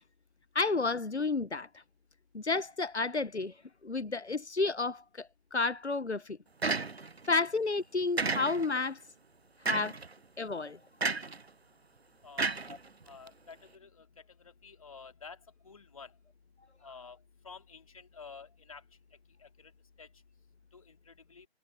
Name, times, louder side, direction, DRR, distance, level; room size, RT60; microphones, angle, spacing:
voice 1, 0.5-1.8 2.3-3.6 3.8-6.4 7.3-9.0 9.6-10.0 10.4-10.8 12.7-12.8, left 3 dB, 90° left, 0.9 m, -31 dB
sound 1, 6.6-7.3 8.2-8.8 9.7-10.1 11.0-11.4 12.4-13.3, right 4 dB, 70° right, 1.0 m, -32 dB
voice 2, 12.2-12.6 13.1-14.1 14.4-15.4 15.6-16.1 16.8-17.2 17.4-18.8 19.4-19.7 20.0-20.1 20.7-21.5, left 5 dB, 30° left, 2.9 m, -50 dB
figure-of-eight pair, 160°, 32 cm